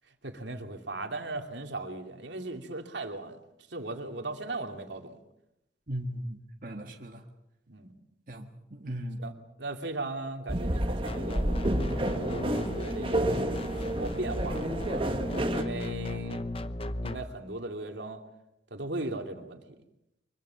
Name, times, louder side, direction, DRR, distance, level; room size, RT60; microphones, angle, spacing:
voice 1, 0.2-3.4 3.7-5.2 6.7-6.9 7.7-7.9 9.2-15.1 15.5-16.4 17.0-18.2 18.7-19.6, right 2 dB, 75° right, 4 dB, 2.7 m, -38 dB
voice 2, 5.9-7.2 8.3-9.2, equal, 50° right, 2 dB, 1.8 m, -38 dB
sound 1, 10.5-15.6, right 1 dB, 30° right, 1.6 m, -30 dB
sound 2, 11.1-17.2, left 1 dB, 30° left, 1.0 m, -37 dB
24.0 x 23.0 x 7.2 m, 0.85 s
head